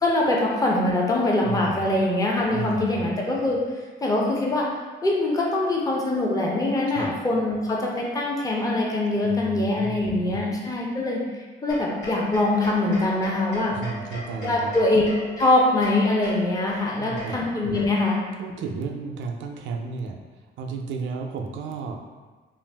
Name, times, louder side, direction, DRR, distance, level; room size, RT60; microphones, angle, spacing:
voice 1, 0.0-3.6 4.0-4.7 5.0-11.2 11.6-13.8 14.4-15.0 15.4-18.2, left 2 dB, 15° left, -2 dB, 0.6 m, -23 dB
voice 2, 1.4-1.9 2.5-3.1 6.9-7.1 9.2-10.4 13.7-14.8 17.0-17.4 18.4-20.2 20.6-22.0, right 4 dB, 70° right, 3 dB, 0.4 m, -33 dB
sound 1, 11.7-18.3, equal, 70° left, 0.9 m, -39 dB
2.5 x 2.4 x 3.3 m, 1.3 s
cardioid pair, 90°, 20 cm